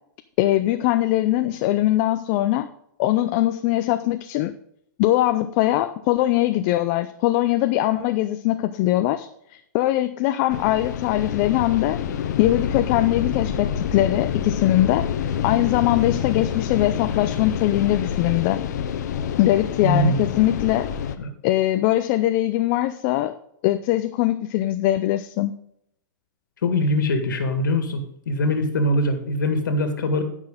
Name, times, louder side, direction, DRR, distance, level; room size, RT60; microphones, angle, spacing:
voice 1, 0.4-2.7 3.0-4.5 5.0-12.0 12.4-18.6 19.4-20.9 21.4-23.4 23.6-25.5, left 15 dB, 35° left, 10 dB, 0.5 m, -21 dB
sound 1, 10.5-21.2, left 8 dB, 60° left, 0.9 m, -27 dB
voice 2, 19.8-20.3 21.2-21.3 26.6-30.2, left 1 dB, 80° left, 6 dB, 1.8 m, -22 dB
14.0 x 6.2 x 3.8 m, 0.74 s
hypercardioid pair, 145°, 10 cm